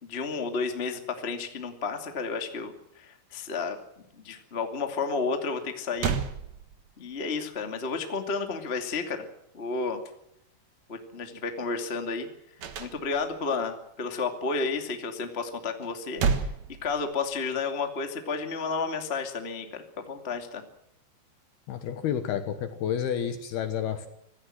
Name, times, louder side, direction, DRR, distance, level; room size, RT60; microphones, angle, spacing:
voice 1, 0.0-3.8 4.1-6.2 7.0-9.3 9.5-10.0 10.9-12.3 12.8-16.2 16.8-20.6, left 4 dB, 25° left, 5 dB, 1.3 m, -31 dB
sound 1, 5.6-5.7 6.0-7.1 12.6-13.5 15.8-17.4, right 6 dB, 70° right, 1.6 m, -31 dB
voice 2, 21.7-24.1, left 9 dB, 65° left, 9 dB, 2.8 m, -30 dB
26.0 x 16.5 x 7.8 m, 0.78 s
omnidirectional pair, 5.7 m